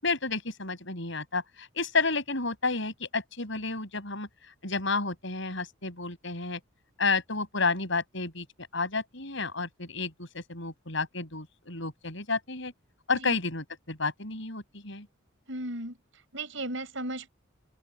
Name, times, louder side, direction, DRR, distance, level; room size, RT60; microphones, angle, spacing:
voice 1, 0.0-4.3 4.6-6.6 7.0-8.5 8.7-12.7 13.1-15.1, left 3 dB, 65° left, 6.4 m, -31 dB
voice 2, 15.5-16.0 16.3-17.3, right 1 dB, 70° right, 6.6 m, -35 dB
head